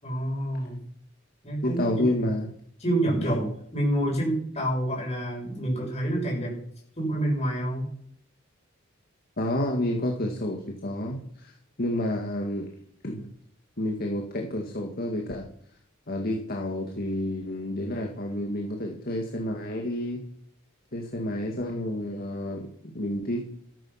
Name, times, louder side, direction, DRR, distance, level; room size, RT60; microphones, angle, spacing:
voice 1, 0.0-0.8 1.4-1.9 2.8-3.5 3.7-6.5 7.0-7.9, right 1 dB, 30° left, -2 dB, 7.0 m, -27 dB
voice 2, 1.6-2.5 3.2-3.3 9.4-12.7 13.0-13.3 13.8-15.5 16.1-20.2 20.9-23.6, left 1 dB, 50° left, 1 dB, 1.9 m, -30 dB
13.5 x 10.5 x 5.9 m, 0.64 s
head